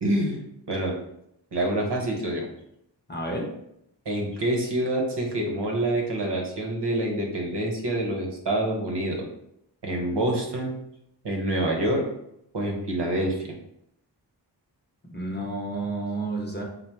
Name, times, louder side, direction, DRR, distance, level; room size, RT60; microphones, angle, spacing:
voice 1, 0.0-0.4 0.7-0.9 1.5-2.5 4.0-9.2 9.8-10.7 11.2-12.1 12.5-13.5, right 1 dB, 65° right, 0 dB, 0.9 m, -26 dB
voice 2, 3.1-3.5 15.1-16.6, right 2 dB, 25° left, 0 dB, 0.8 m, -30 dB
3.4 x 2.2 x 4.3 m, 0.79 s
wide cardioid pair, 50°, 43 cm